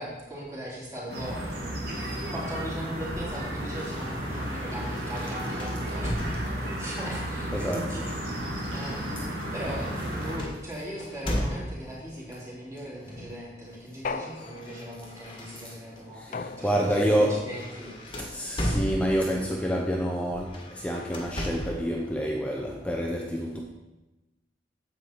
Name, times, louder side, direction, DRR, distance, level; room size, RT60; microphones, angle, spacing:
voice 1, 0.0-1.7 2.0-17.9 18.7-18.9, equal, 15° right, -6 dB, 3.2 m, -39 dB
sound 1, 1.1-10.4, equal, 60° right, 2.8 m, -33 dB
sound 2, 3.8-6.9 7.8-12.0 13.1-13.4 13.7-16.0 16.5-16.7 17.1-19.5 20.4-21.9, equal, 30° left, 1.6 m, -36 dB
voice 2, 7.5-7.9 16.6-17.4 18.3-20.5 20.8-23.6, equal, 5° left, 0 dB, 0.7 m, -27 dB
sound 3, 14.0-15.0 16.3-17.2, left 4 dB, 45° left, 0.4 m, -37 dB
9.4 x 8.1 x 4.5 m, 1.0 s
head